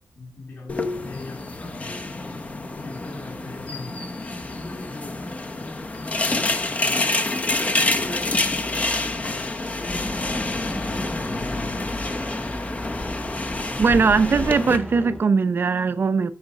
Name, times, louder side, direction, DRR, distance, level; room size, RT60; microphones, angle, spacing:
voice 1, 0.0-7.1 8.0-12.0, left 2 dB, 50° left, 3.2 m, -41 dB
sound 1, 0.7-14.8, left 2 dB, 30° left, 0.8 m, -27 dB
sound 2, 9.9-15.2, left 1 dB, 5° left, 0.4 m, -34 dB
voice 2, 13.8-16.3, right 5 dB, 45° right, 0.5 m, -20 dB
8.0 x 4.9 x 5.3 m
wide cardioid pair, 130°, 5 cm